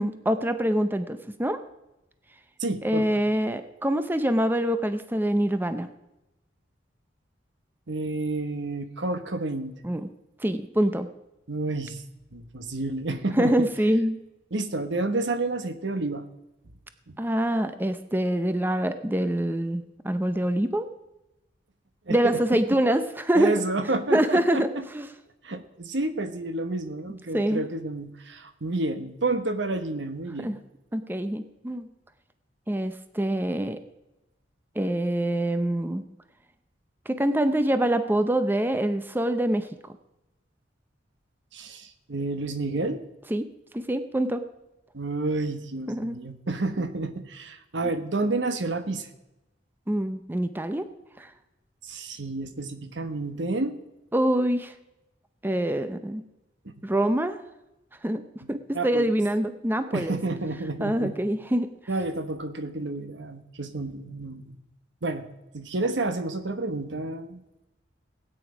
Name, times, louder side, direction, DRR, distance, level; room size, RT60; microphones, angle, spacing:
voice 1, 0.0-1.6 2.8-5.9 9.8-10.1 10.4-11.1 13.4-14.2 17.2-20.9 22.1-23.6 24.1-25.1 27.3-27.6 30.4-30.6 30.9-31.9 32.7-33.8 34.8-36.0 37.1-39.7 43.3-43.5 43.7-44.4 45.9-46.2 49.9-50.9 51.2-51.3 54.1-54.7 55.4-56.2 56.8-57.4 58.0-58.2 58.5-60.2 60.8-61.7, right 1 dB, 10° right, 10 dB, 0.6 m, -25 dB
voice 2, 2.6-3.2 7.9-9.7 11.5-12.0 12.3-13.5 14.5-16.2 17.1-17.2 22.1-22.4 23.3-24.8 25.4-30.6 41.5-43.0 44.9-49.1 51.8-53.8 56.6-56.7 58.7-59.1 59.9-61.2 61.9-64.6 65.0-65.3 65.5-67.4, right 2 dB, 75° right, 9 dB, 1.1 m, -30 dB
17.0 x 9.2 x 4.9 m, 0.95 s
head